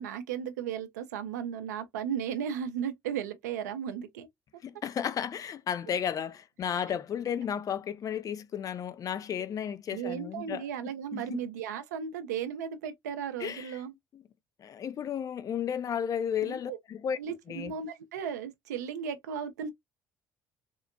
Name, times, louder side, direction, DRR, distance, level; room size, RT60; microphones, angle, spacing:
voice 1, 0.0-4.3 6.9-7.0 9.9-13.9 16.4-16.8 17.2-19.7, right 8 dB, 80° right, 0.5 m, -35 dB
voice 2, 4.6-11.5 13.4-13.8 14.6-17.2 17.5-17.7, left 8 dB, 40° left, 0.4 m, -33 dB
3.7 x 2.1 x 2.3 m
hypercardioid pair, 60°, 9 cm